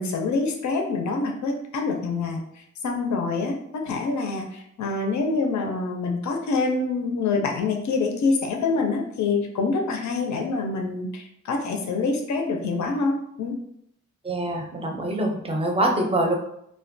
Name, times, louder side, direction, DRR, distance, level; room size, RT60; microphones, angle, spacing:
voice 1, 0.0-13.5, left 3 dB, 70° left, 2 dB, 0.4 m, -26 dB
voice 2, 14.2-16.4, right 1 dB, 20° right, 1 dB, 0.5 m, -24 dB
2.3 x 2.1 x 2.6 m, 0.73 s
wide cardioid pair, 80°, 30 cm